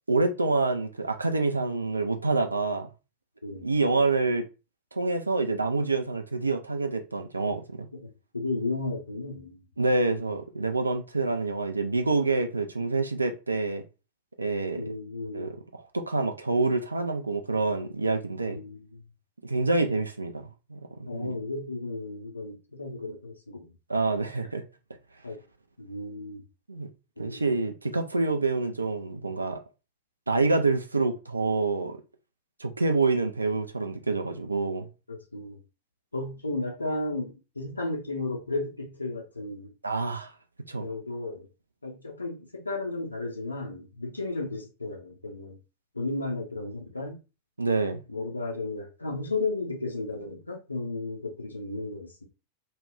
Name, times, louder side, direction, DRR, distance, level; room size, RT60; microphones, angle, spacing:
voice 1, 0.1-2.9 3.6-4.4 4.9-7.9 9.8-13.8 14.4-14.8 15.3-15.6 15.9-18.6 19.4-21.3 23.9-24.6 26.7-26.9 27.2-29.6 30.3-32.0 32.6-34.9 39.8-40.3 40.7-40.9 47.6-48.0, right 3 dB, 80° right, 0.4 m, -27 dB
voice 2, 3.4-3.7 7.5-7.6 7.9-9.6 14.8-15.6 18.5-19.0 21.1-23.7 25.2-25.4 25.8-26.4 27.2-27.4 35.1-35.6 36.1-39.7 40.8-41.5 41.8-45.6 45.9-47.2 48.1-52.2, left 2 dB, 80° left, 0.6 m, -34 dB
2.3 x 2.2 x 3.5 m
figure-of-eight pair, 90°, 0 cm